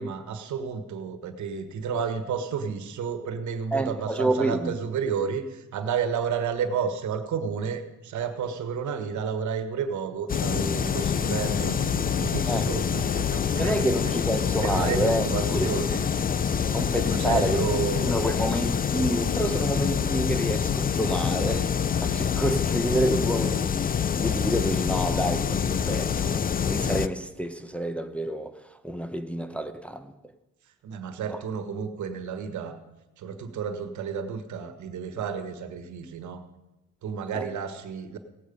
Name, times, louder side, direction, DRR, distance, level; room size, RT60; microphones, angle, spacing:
voice 1, 0.0-14.1 14.6-16.1 16.9-18.1 30.8-32.8 33.2-36.4 37.0-38.2, right 6 dB, 70° right, 1.4 m, -31 dB
voice 2, 3.7-4.8 12.5-12.7 13.6-15.8 16.7-17.6 18.0-30.1 31.3-31.4 37.3-37.5, right 1 dB, 5° left, 0.8 m, -28 dB
sound 1, 10.3-27.1, left 7 dB, 30° left, 0.5 m, -26 dB
17.5 x 8.4 x 5.3 m
cardioid pair, 90°, 30 cm